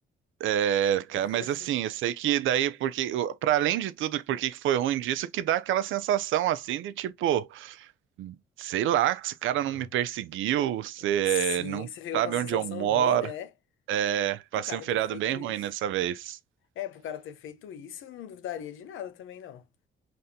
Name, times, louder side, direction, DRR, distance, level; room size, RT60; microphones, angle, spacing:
voice 1, 0.4-7.9 8.2-11.9 12.1-13.3 13.9-16.4, right 11 dB, 80° right, 0.6 m, -27 dB
voice 2, 1.1-1.5 9.7-9.9 11.0-13.5 14.5-15.6 16.8-19.6, left 10 dB, 80° left, 0.8 m, -38 dB
5.3 x 3.3 x 2.8 m
cardioid pair, 90°, 20 cm